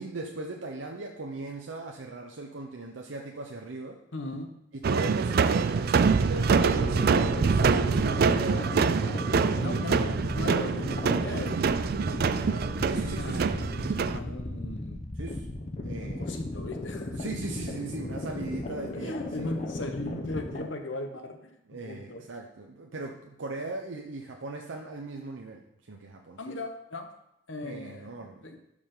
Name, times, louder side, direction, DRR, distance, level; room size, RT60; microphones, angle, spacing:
voice 1, 0.0-4.0 4.7-8.8 9.6-10.1 12.8-13.6 15.2-15.5 15.8-16.3 17.2-19.5 21.7-25.6 25.9-26.5 27.6-28.5, right 3 dB, 90° right, 1 dB, 0.7 m, -38 dB
voice 2, 4.1-4.5 9.6-15.0 15.9-17.2 18.9-21.5 21.8-22.2 26.4-27.1 27.5-28.1 28.4-28.6, left 2 dB, 85° left, 6 dB, 1.1 m, -38 dB
sound 1, 4.8-14.2, right 5 dB, 55° right, 0.4 m, -25 dB
sound 2, 6.5-20.6, left 1 dB, 40° left, 0.8 m, -36 dB
11.5 x 5.0 x 3.8 m, 0.82 s
head